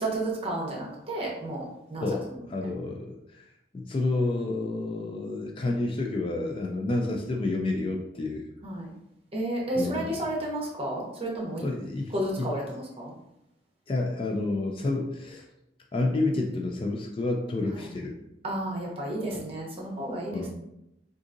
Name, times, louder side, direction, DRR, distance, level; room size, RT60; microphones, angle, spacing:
voice 1, 0.0-1.6 1.9-2.0 2.6-2.7 8.6-8.9 9.3-11.7 12.1-13.1 18.4-20.4, right 1 dB, 30° right, -3 dB, 0.8 m, -31 dB
voice 2, 2.0-3.2 3.7-8.5 9.7-10.2 11.6-12.5 13.9-15.4 15.9-18.1 20.3-20.5, left 2 dB, 30° left, 1 dB, 0.3 m, -29 dB
3.7 x 2.5 x 2.5 m, 0.85 s
head